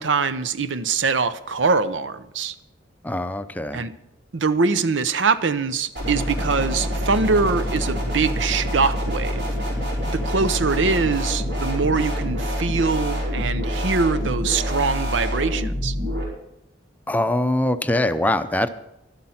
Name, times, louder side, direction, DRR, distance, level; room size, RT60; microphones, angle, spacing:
voice 1, 0.0-2.5 3.7-3.9 4.3-9.5 10.0-15.9, right 4 dB, 85° right, 14 dB, 0.7 m, -23 dB
voice 2, 3.0-3.8 17.1-18.7, left 1 dB, 10° left, 10 dB, 0.5 m, -23 dB
sound 1, 5.9-16.2, equal, 65° right, 4.9 m, -26 dB
12.0 x 11.5 x 5.7 m, 0.86 s
head